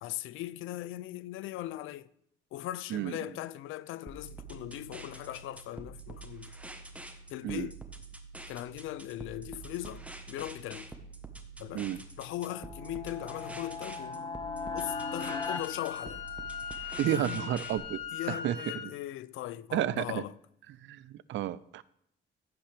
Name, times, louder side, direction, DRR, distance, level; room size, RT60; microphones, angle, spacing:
voice 1, 0.0-2.1 2.5-6.5 7.3-7.8 8.5-10.9 11.6-11.9 12.2-14.3 14.7-16.2 17.1-17.5 18.1-20.3, left 14 dB, 85° left, 0.4 m, -39 dB
sound 1, 4.1-17.8, right 3 dB, 5° right, 1.2 m, -47 dB
sound 2, 12.4-16.8, left 4 dB, 20° left, 0.9 m, -39 dB
Wind instrument woodwind instrument, 14.8-18.8, left 7 dB, 70° left, 3.2 m, -40 dB
voice 2, 17.0-18.0 18.3-18.9 19.7-20.2 20.8-21.8, right 12 dB, 70° right, 0.5 m, -32 dB
15.0 x 5.7 x 3.4 m
cardioid pair, 90°, 20 cm